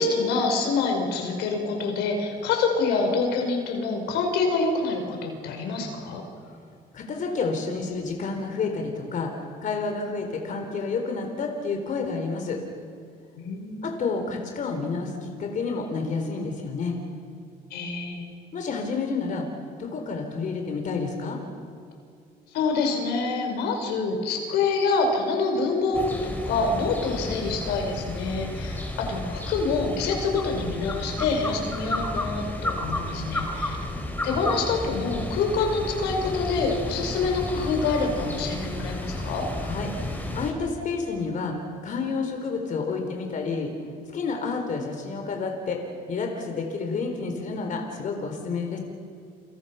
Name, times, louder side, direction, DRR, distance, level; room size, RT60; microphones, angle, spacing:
voice 1, 0.0-6.2 13.4-13.9 17.7-18.3 22.5-33.8 34.2-39.5, left 4 dB, 85° left, 3 dB, 5.4 m, -26 dB
voice 2, 6.9-9.3 9.6-12.6 13.8-17.0 18.5-19.5 19.8-21.4 39.6-39.9 40.3-41.5 41.8-43.7 44.1-45.8 46.1-48.8, left 4 dB, 50° left, 3 dB, 4.1 m, -29 dB
sound 1, 25.9-40.5, left 1 dB, 10° left, 4.6 m, -32 dB
29.5 x 27.0 x 5.9 m, 2.3 s
cardioid pair, 110°, 17 cm